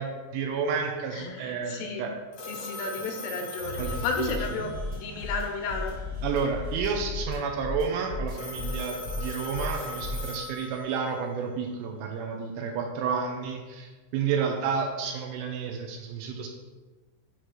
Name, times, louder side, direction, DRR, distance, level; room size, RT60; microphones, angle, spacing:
voice 1, 0.0-2.1 3.8-4.6 6.2-16.5, right 6 dB, 85° right, 2 dB, 3.0 m, -31 dB
voice 2, 1.1-2.0 2.4-6.0, left 4 dB, 85° left, 2 dB, 3.2 m, -33 dB
Telephone, 2.3-5.2 8.3-11.2, left 2 dB, 70° left, 1.6 m, -39 dB
sound 1, 3.6-10.3, left 3 dB, 50° right, 1.0 m, -35 dB
8.3 x 3.2 x 6.0 m, 1.3 s
omnidirectional pair, 5.8 m